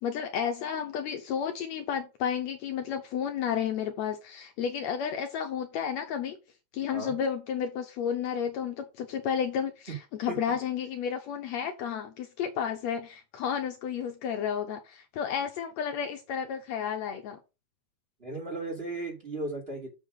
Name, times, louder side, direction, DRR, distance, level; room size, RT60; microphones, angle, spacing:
voice 1, 0.0-6.4 6.7-17.4, left 8 dB, 75° left, 1.8 m, -32 dB
voice 2, 18.2-19.9, right 2 dB, 20° right, 2.5 m, -35 dB
7.2 x 3.7 x 6.2 m
omnidirectional pair, 3.5 m